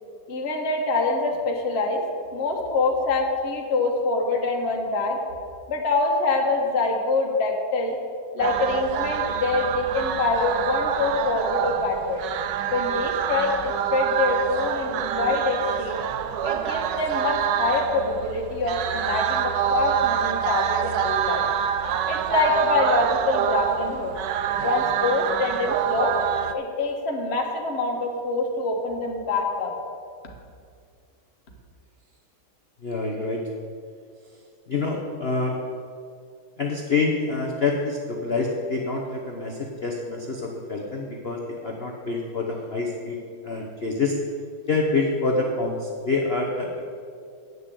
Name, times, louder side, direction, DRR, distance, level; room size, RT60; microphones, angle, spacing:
voice 1, 0.3-2.0 2.3-5.2 5.7-8.0 8.3-12.2 12.7-16.0 16.4-21.5 22.1-24.2 24.6-26.1 26.5-29.7, left 3 dB, 35° left, 0 dB, 1.4 m, -25 dB
sound 1, 8.4-26.5, right 9 dB, 75° right, 1.0 m, -26 dB
voice 2, 32.8-33.4 34.7-35.6 36.6-43.2 43.4-44.2 44.7-46.8, left 3 dB, 55° left, 0 dB, 0.7 m, -26 dB
9.0 x 6.6 x 8.3 m, 2.2 s
omnidirectional pair, 2.3 m